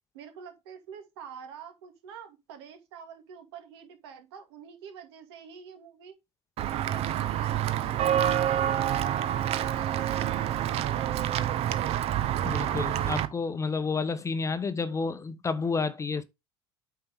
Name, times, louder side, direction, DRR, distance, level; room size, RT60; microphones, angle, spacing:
voice 1, 0.1-6.1 6.9-11.9, right 7 dB, 65° right, 2.3 m, -47 dB
Walk footsteps / Bell, 6.6-13.3, right 11 dB, 45° right, 0.9 m, -27 dB
voice 2, 12.4-16.2, left 4 dB, 20° left, 0.9 m, -30 dB
8.7 x 5.6 x 3.6 m
figure-of-eight pair, 70°, 14 cm